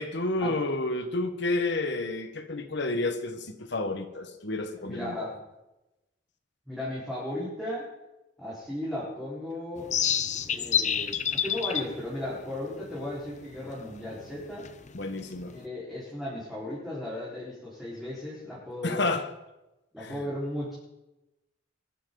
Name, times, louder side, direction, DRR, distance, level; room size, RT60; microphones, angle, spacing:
voice 1, 0.0-5.3 14.9-15.5 18.8-19.3 20.0-20.1, left 2 dB, 65° left, 8 dB, 1.4 m, -30 dB
voice 2, 4.8-5.4 6.7-7.9 8.4-9.9 10.5-14.7 15.5-19.1 19.9-20.7, left 1 dB, ahead, -8 dB, 4.6 m, -36 dB
sound 1, 9.8-15.6, left 8 dB, 40° left, 0.8 m, -31 dB
22.5 x 12.5 x 4.0 m, 0.96 s
head